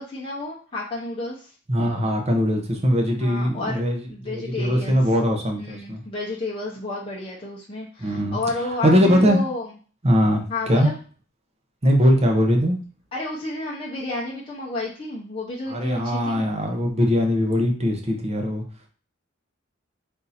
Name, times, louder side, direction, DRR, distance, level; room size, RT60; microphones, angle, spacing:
voice 1, 0.0-1.5 3.2-3.8 4.1-5.0 5.6-9.7 10.5-11.0 13.1-16.5, left 2 dB, 25° left, -6 dB, 0.8 m, -31 dB
voice 2, 1.7-4.0 4.2-6.0 8.0-8.4 8.8-9.4 10.0-10.9 11.8-12.8 15.7-18.6, equal, 30° right, 2 dB, 0.9 m, -21 dB
3.7 x 2.7 x 4.2 m, 0.39 s
head